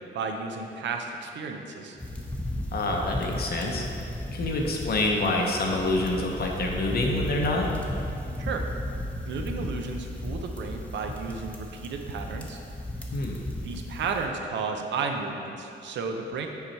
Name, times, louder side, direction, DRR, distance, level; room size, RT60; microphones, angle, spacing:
voice 1, 0.0-2.0 8.4-8.6 9.2-12.6 13.6-16.5, right 4 dB, 75° right, 3 dB, 0.6 m, -33 dB
sound 1, 2.0-14.2, left 1 dB, 5° left, 0.7 m, -35 dB
voice 2, 2.7-3.8 4.3-7.7 13.1-13.4, left 2 dB, 55° left, 0 dB, 0.9 m, -27 dB
5.5 x 4.7 x 4.3 m, 2.6 s
cardioid pair, 90°, 19 cm